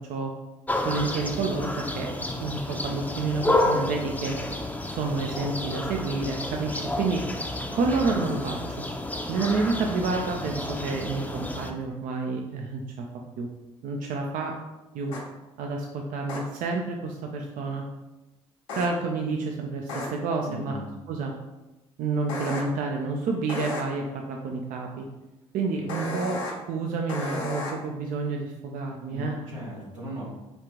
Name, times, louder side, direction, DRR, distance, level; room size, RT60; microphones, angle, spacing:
sound 1, 0.7-11.7, left 1 dB, 10° left, 0.6 m, -30 dB
voice 1, 0.8-2.1 2.4-4.4 4.9-7.2 7.7-8.8 9.3-13.0 13.4-13.5 13.8-14.5 14.9-15.2 15.6-17.8 18.8-20.8 21.1-21.3 22.0-25.0 25.5-26.4 26.7-29.4, right 3 dB, 60° right, 1 dB, 0.5 m, -29 dB
voice 2, 10.2-11.0 20.5-20.9 29.1-30.2, equal, 90° right, -5 dB, 1.2 m, -39 dB
sound 2, 15.1-15.2 16.3-16.4 18.7-18.9 19.9-20.1 22.3-22.6 23.5-23.8 25.9-26.5 27.1-27.7, left 2 dB, 80° left, 0.9 m, -32 dB
5.2 x 2.4 x 3.0 m, 1.0 s
hypercardioid pair, 50°, 16 cm